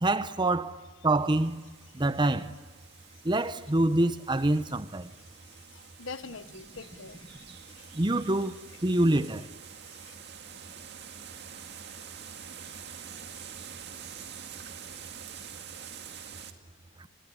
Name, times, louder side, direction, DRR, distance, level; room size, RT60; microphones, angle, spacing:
voice 1, 0.0-1.6 1.9-2.5 3.2-5.1 7.9-9.4, right 2 dB, 20° right, 0.8 m, -26 dB
sound 1, 1.2-16.5, right 8 dB, 50° right, 2.2 m, -47 dB
voice 2, 2.8-3.2 5.1-8.0 9.7-10.1, left 4 dB, 65° left, 1.2 m, -47 dB
25.5 x 22.0 x 10.0 m
head